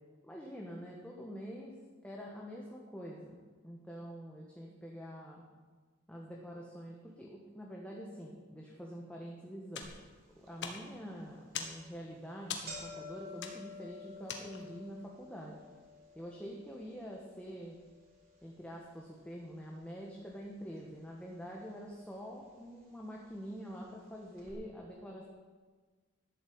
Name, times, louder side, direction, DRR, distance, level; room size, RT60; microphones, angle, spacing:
voice 1, 0.2-1.7 2.0-5.4 6.1-9.9 10.3-15.6 16.1-17.8 18.4-25.2, equal, 5° left, -2 dB, 1.4 m, -46 dB
sound 1, 9.7-14.9, left 6 dB, 60° left, 1.4 m, -45 dB
sound 2, 9.8-9.9 10.5-10.6 11.4-11.6 11.9-12.0 12.3-20.5 20.8-21.5 22.3-22.4 23.3-23.4 23.7-23.8 24.4-24.5, left 3 dB, 50° right, 3.8 m, -52 dB
12.5 x 7.2 x 8.7 m, 1.4 s
head